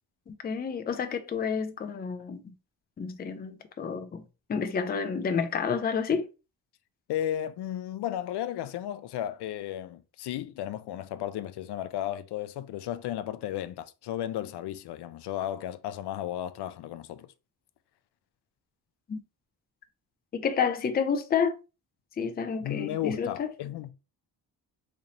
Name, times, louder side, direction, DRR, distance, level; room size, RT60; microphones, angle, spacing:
voice 1, 0.3-2.5 3.0-4.2 4.5-6.3 19.1-19.2 20.3-21.5 22.2-23.5, left 6 dB, 25° left, 0.4 m, -29 dB
voice 2, 7.1-17.3 22.6-23.9, left 12 dB, 85° left, 0.5 m, -34 dB
3.9 x 3.2 x 2.8 m
wide cardioid pair, 175°, 39 cm